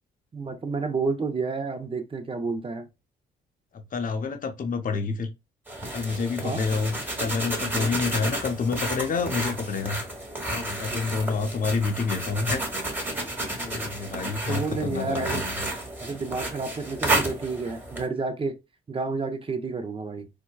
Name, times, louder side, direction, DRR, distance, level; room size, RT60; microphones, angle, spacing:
voice 1, 0.3-2.9 6.4-6.6 7.9-8.0 10.9-11.0 14.5-15.5 16.0-18.6 18.9-20.3, right 4 dB, 25° right, 0.6 m, -30 dB
voice 2, 3.9-5.3 5.9-10.0 10.4-12.9 13.5-15.6, left 4 dB, 45° left, 0.7 m, -28 dB
sound 1, 5.7-18.1, right 1 dB, 10° right, 1.2 m, -31 dB
4.5 x 2.2 x 2.3 m
cardioid pair, 90°, 20 cm